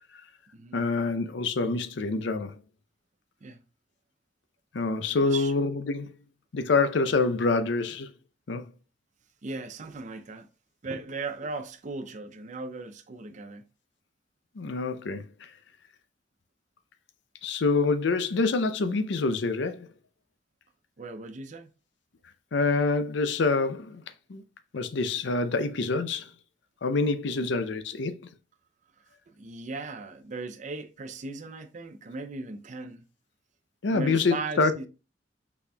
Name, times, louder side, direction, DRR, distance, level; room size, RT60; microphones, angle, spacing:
voice 1, 0.7-2.6 4.7-6.1 6.5-8.1 8.5-8.7 14.6-15.5 17.4-19.9 22.5-24.0 24.3-24.4 24.7-26.3 26.8-28.1 33.8-34.7, left 3 dB, 70° left, 0.5 m, -26 dB
voice 2, 5.2-5.5 9.4-10.5 10.8-13.6 21.0-21.7 29.3-33.0 33.9-34.9, right 3 dB, 40° right, 0.5 m, -37 dB
5.6 x 4.2 x 2.2 m
head